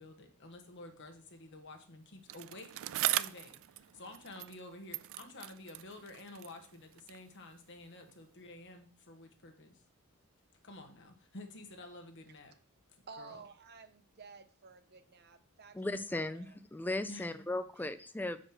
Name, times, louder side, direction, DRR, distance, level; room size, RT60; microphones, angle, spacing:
voice 1, 0.0-2.7 3.1-9.8 10.6-12.5 13.2-13.4 17.0-17.3, left 2 dB, 55° left, 5 dB, 1.4 m, -51 dB
Bicycle, 2.3-4.7 4.9-7.3 8.1-8.2, right 15 dB, 65° right, 0.3 m, -39 dB
voice 2, 13.1-16.5, right 4 dB, 50° right, 10 dB, 0.7 m, -53 dB
voice 3, 15.7-18.4, left 2 dB, 10° left, 11 dB, 0.4 m, -37 dB
6.4 x 5.1 x 5.7 m, 0.43 s
head